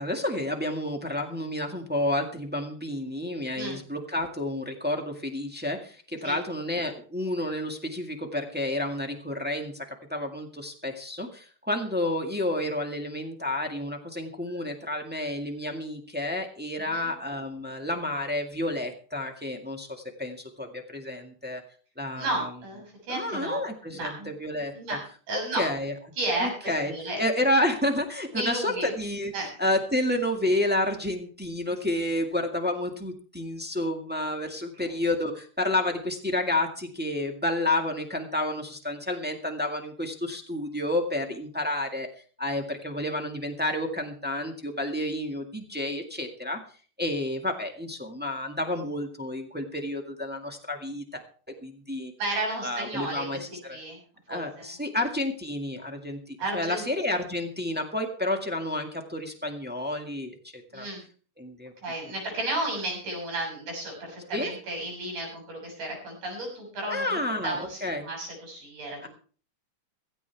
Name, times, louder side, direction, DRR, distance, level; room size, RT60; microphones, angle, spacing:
voice 1, 0.0-21.6 22.0-22.5 23.1-25.0 25.3-25.9 26.4-29.3 29.6-42.1 42.4-46.6 47.0-51.2 51.6-52.1 52.6-53.8 54.3-60.9 61.4-61.7 64.3-64.5 66.9-68.1 69.0-69.1, left 1 dB, 5° right, 2 dB, 1.0 m, -30 dB
voice 2, 22.2-23.6 23.9-24.3 24.7-25.0 25.3-25.6 26.2-27.2 28.3-28.9 29.3-29.5 52.2-53.3 53.7-54.0 54.3-54.7 56.4-56.8 60.7-61.0 61.8-69.1, right 2 dB, 70° right, 0 dB, 8.5 m, -33 dB
16.5 x 15.0 x 3.5 m, 0.41 s
omnidirectional pair, 3.7 m